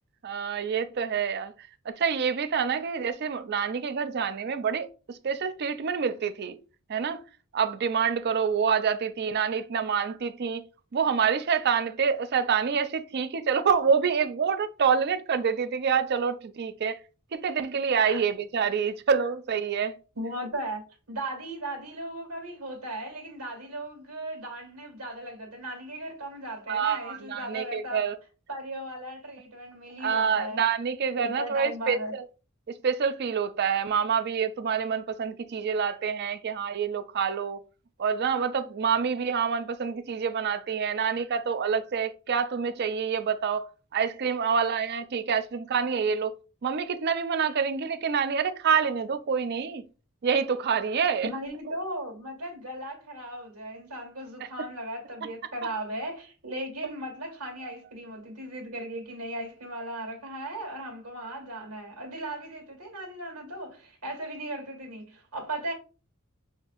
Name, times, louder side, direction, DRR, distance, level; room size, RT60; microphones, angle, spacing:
voice 1, 0.2-1.5 1.9-6.6 6.9-7.2 7.5-10.6 10.9-17.0 17.3-20.0 26.7-28.2 30.0-32.3 32.7-37.6 38.0-43.7 43.9-46.3 46.6-49.9 50.2-51.3, right 6 dB, 50° right, 0.4 m, -27 dB
voice 2, 20.1-28.0 28.5-30.6 31.2-32.1 51.2-65.7, right 1 dB, 90° right, 2.0 m, -37 dB
6.4 x 2.6 x 2.5 m
head